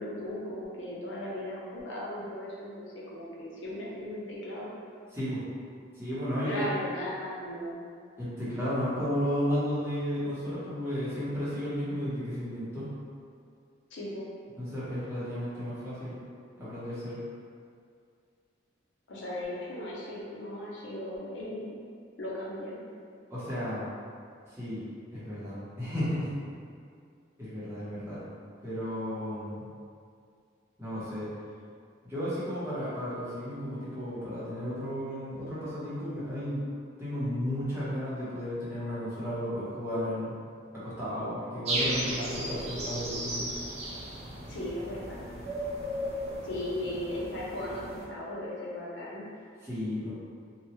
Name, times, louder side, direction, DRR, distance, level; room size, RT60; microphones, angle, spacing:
voice 1, 0.0-4.7 6.4-7.8 13.9-14.3 19.1-21.8 22.2-22.8 44.5-45.3 46.4-49.3, left 1 dB, 80° left, -5 dB, 0.6 m, -37 dB
voice 2, 5.1-5.4 5.9-6.7 8.2-12.9 14.6-16.2 16.6-17.2 23.3-23.9 24.5-24.8 25.1-26.3 27.4-28.3 28.6-29.6 30.8-31.3 32.0-36.6 37.0-40.4 40.7-43.5 49.6-50.1, equal, 15° right, -12 dB, 0.9 m, -33 dB
sound 1, 41.6-48.1, right 1 dB, 35° right, 0.4 m, -35 dB
2.9 x 2.3 x 3.0 m, 2.3 s
head